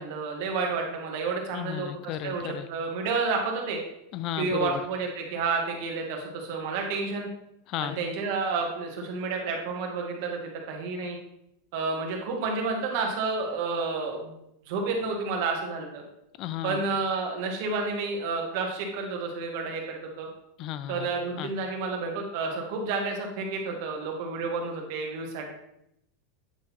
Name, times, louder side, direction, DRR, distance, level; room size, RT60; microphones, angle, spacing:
voice 1, 0.0-1.9 2.2-3.8 4.4-7.3 7.8-11.2 11.7-14.3 14.7-16.0 16.6-20.3 20.9-25.5, right 4 dB, 55° right, 1 dB, 1.7 m, -30 dB
voice 2, 1.5-2.7 4.1-4.8 7.7-8.0 16.4-16.9 20.6-21.1 21.4-21.5, left 11 dB, 35° left, 14 dB, 0.4 m, -33 dB
9.0 x 3.9 x 4.2 m, 0.80 s
supercardioid pair, 160°, 0 cm